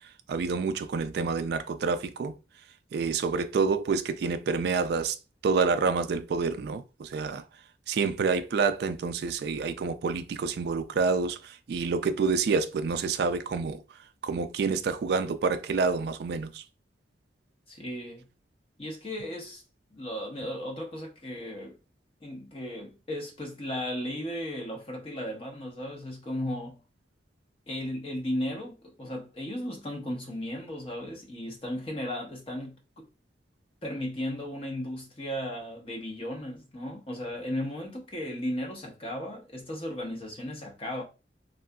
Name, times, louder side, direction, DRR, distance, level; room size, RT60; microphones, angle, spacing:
voice 1, 0.3-2.3 2.9-5.2 5.4-7.4 7.9-13.8 14.2-16.6, right 5 dB, 60° right, 0.3 m, -28 dB
voice 2, 17.7-18.3 18.8-19.6 19.9-21.8 22.2-26.8 27.7-33.1 33.8-41.0, left 1 dB, 30° left, 0.8 m, -35 dB
3.7 x 2.3 x 2.2 m
head